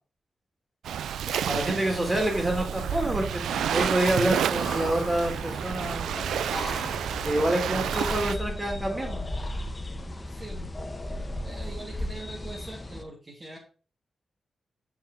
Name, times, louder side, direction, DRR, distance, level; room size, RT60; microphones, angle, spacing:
Waves surf, 0.8-8.4, right 9 dB, 85° right, 0.4 m, -30 dB
voice 1, 1.5-6.2 7.2-9.2, right 1 dB, 25° right, 2 dB, 3.5 m, -27 dB
sound 1, 2.9-13.0, left 1 dB, 35° left, 1.5 m, -36 dB
voice 2, 10.3-10.7 11.4-13.6, right 2 dB, 40° right, -4 dB, 2.9 m, -42 dB
6.9 x 5.7 x 4.8 m, 0.38 s
supercardioid pair, 45°, 0 cm